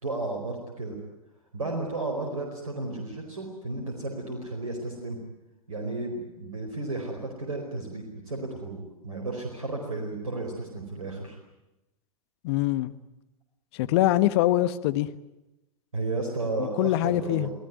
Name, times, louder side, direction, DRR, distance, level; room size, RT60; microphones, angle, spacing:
voice 1, 0.0-1.0 1.5-5.2 5.7-11.4 15.9-17.5, right 2 dB, 75° right, 2 dB, 4.8 m, -33 dB
voice 2, 12.4-12.9 13.7-15.1 16.6-17.5, left 15 dB, 45° left, 13 dB, 1.4 m, -24 dB
27.5 x 17.5 x 9.5 m, 0.98 s
figure-of-eight pair, 105°, 18 cm